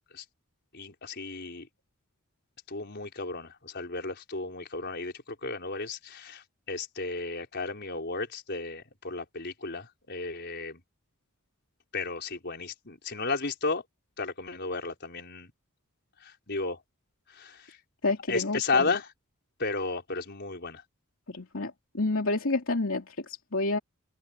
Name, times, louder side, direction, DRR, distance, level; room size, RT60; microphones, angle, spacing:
voice 1, 0.7-1.7 2.7-10.8 11.9-13.8 14.2-15.5 16.2-16.8 17.3-17.8 18.3-19.1 19.6-20.8, left 3 dB, 50° left, 5.1 m, -33 dB
voice 2, 18.0-18.9 21.3-23.8, left 2 dB, 70° left, 3.0 m, -29 dB
open air
head